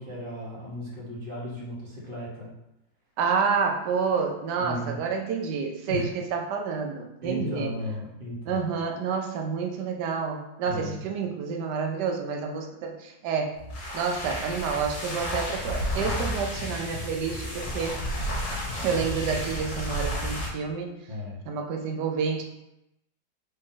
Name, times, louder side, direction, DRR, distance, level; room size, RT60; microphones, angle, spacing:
voice 1, 0.0-2.5 4.6-5.0 5.9-6.1 7.2-8.7 10.7-11.0 21.1-21.4, left 1 dB, 35° right, -5 dB, 1.1 m, -35 dB
voice 2, 3.2-7.7 8.5-13.6 13.9-18.0 18.8-21.0 21.5-22.4, right 5 dB, 75° right, 3 dB, 1.2 m, -29 dB
sound 1, 13.6-20.6, equal, 60° left, 1.7 m, -32 dB
4.0 x 3.2 x 3.8 m, 0.87 s
omnidirectional pair, 1.9 m